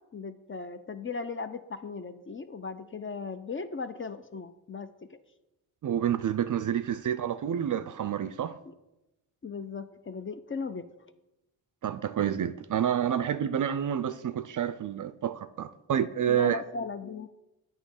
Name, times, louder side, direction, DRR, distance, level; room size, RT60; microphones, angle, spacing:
voice 1, 0.1-5.2 8.6-8.7 9.4-10.9 16.3-17.3, left 4 dB, 25° left, 0.5 m, -37 dB
voice 2, 5.8-8.6 11.8-16.6, right 9 dB, 45° right, 0.4 m, -29 dB
8.9 x 3.1 x 6.5 m
supercardioid pair, 40°, 47 cm